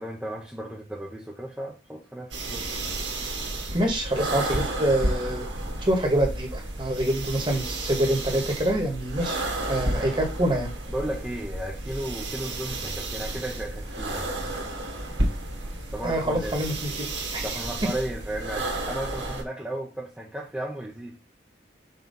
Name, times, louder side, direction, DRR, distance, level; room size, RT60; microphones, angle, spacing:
voice 1, 0.0-2.6 9.9-10.1 10.9-14.3 15.9-16.6 17.4-21.2, right 1 dB, 5° right, 1.0 m, -34 dB
sound 1, 2.3-19.4, right 1 dB, 85° right, 1.8 m, -32 dB
voice 2, 3.7-5.4 5.8-10.7 16.0-17.5, right 1 dB, 25° right, 1.7 m, -26 dB
5.8 x 3.2 x 5.5 m
head